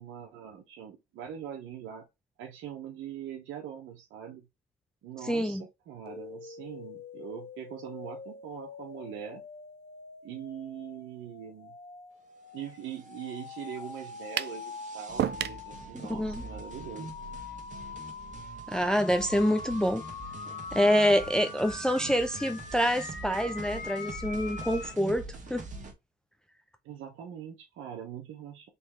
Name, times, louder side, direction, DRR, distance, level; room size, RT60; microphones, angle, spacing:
voice 1, 0.0-2.1 2.4-4.5 5.0-9.4 10.2-11.7 12.5-17.1 21.8-22.2 26.8-28.7, right 9 dB, 85° right, 1.0 m, -42 dB
voice 2, 5.2-5.6 16.1-16.4 18.7-20.0 20.7-25.2 25.5-25.6, equal, 5° left, 0.5 m, -26 dB
sound 1, 6.1-24.9, left 4 dB, 60° left, 2.3 m, -43 dB
sound 2, 12.7-25.9, right 3 dB, 40° right, 1.5 m, -45 dB
sound 3, 14.4-14.6 15.2-15.6, right 11 dB, 60° right, 0.5 m, -30 dB
4.1 x 3.2 x 3.6 m
cardioid pair, 90°, 20 cm